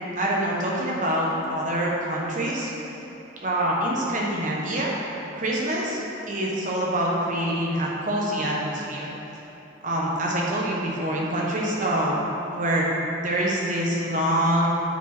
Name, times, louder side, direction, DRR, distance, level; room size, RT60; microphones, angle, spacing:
voice 1, 0.1-2.7 3.4-4.9 5.3-9.1 9.8-12.2 12.5-12.9 13.1-14.7, right 1 dB, 40° right, -4 dB, 1.3 m, -25 dB
9.0 x 5.2 x 4.4 m, 3.0 s
head